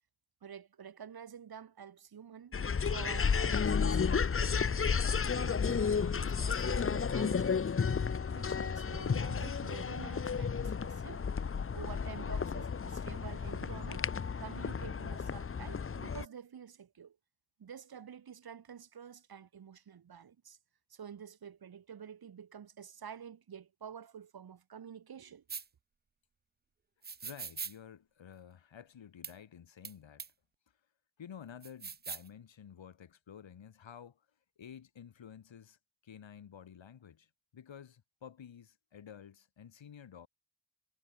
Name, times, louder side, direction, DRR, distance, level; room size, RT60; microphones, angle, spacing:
voice 1, 0.4-2.6 2.9-4.7 5.3-7.7 8.3-11.2 11.7-14.1 14.4-17.2 17.6-20.6 20.9-25.4, right 8 dB, 50° right, 1.1 m, -49 dB
sound 1, 2.5-16.3, left 6 dB, 25° left, 0.7 m, -32 dB
sound 2, 25.5-25.6 27.0-27.7 29.2-29.3 29.8-29.9 30.2-30.3 31.6-32.3, right 5 dB, 20° right, 0.4 m, -41 dB
voice 2, 27.2-30.2 31.2-34.3 34.6-40.3, left 8 dB, 65° left, 2.6 m, -52 dB
wide cardioid pair, 145°, 48 cm